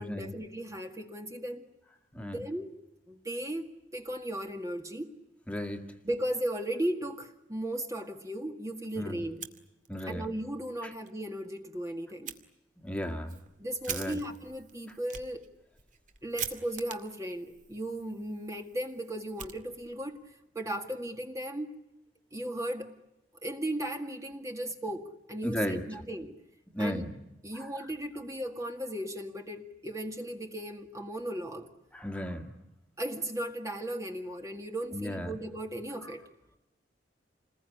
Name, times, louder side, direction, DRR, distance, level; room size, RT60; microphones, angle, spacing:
voice 1, 0.0-1.6 2.2-2.7 3.1-3.7 3.9-5.1 6.0-9.4 10.1-12.3 13.6-15.5 16.2-20.2 20.6-21.7 22.3-22.9 23.4-26.3 26.8-27.1 27.4-31.7 33.0-36.3, right 1 dB, 15° right, 4 dB, 1.9 m, -36 dB
voice 2, 5.5-5.8 9.0-9.2 9.9-10.3 10.8-10.9 12.8-13.4 13.9-14.2 25.4-25.8 26.7-27.1 27.5-27.7 31.9-32.5 34.9-35.3, equal, 5° left, 4 dB, 2.0 m, -34 dB
Fire, 9.2-10.2 10.5-10.6 11.0-11.1 12.2-12.4 13.0-20.1, right 8 dB, 40° right, 2.2 m, -44 dB
28.5 x 21.0 x 9.9 m, 0.90 s
head